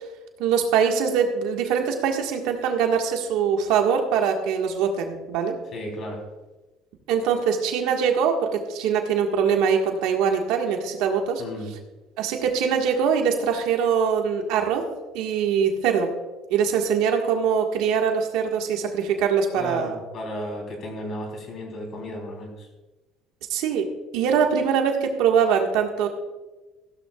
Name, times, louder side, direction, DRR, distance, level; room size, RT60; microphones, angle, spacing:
voice 1, 0.4-5.6 7.1-11.4 12.2-14.9 15.1-16.1 16.5-19.9 23.5-23.9 24.1-26.1, right 7 dB, 80° right, 3 dB, 1.7 m, -23 dB
voice 2, 5.7-6.2 11.4-11.7 19.6-22.7, left 1 dB, 45° left, 2 dB, 3.6 m, -34 dB
15.0 x 12.5 x 2.4 m, 1.2 s
cardioid pair, 125°, 0 cm